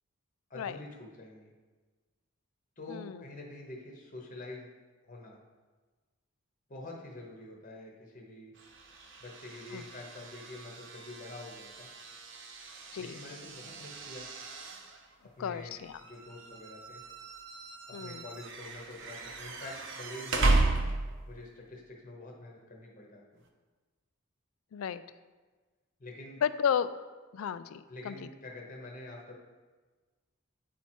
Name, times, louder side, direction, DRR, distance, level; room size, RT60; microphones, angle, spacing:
voice 1, 0.5-1.5 2.8-4.7 5.0-5.4 6.7-8.5 9.2-11.9 13.0-14.3 15.2-15.8 16.0-17.0 17.9-20.7 21.3-23.4 26.0-26.4 27.9-29.4, left 2 dB, 35° left, 0 dB, 0.9 m, -46 dB
voice 2, 2.9-3.2 9.7-9.8 12.9-13.2 15.4-16.0 17.9-18.2 24.7-25.0 26.4-26.9 27.3-28.2, left 8 dB, 70° left, 14 dB, 0.3 m, -33 dB
sound 1, 8.5-21.4, right 2 dB, 55° right, 0.7 m, -35 dB
9.2 x 4.4 x 4.4 m, 1.3 s
head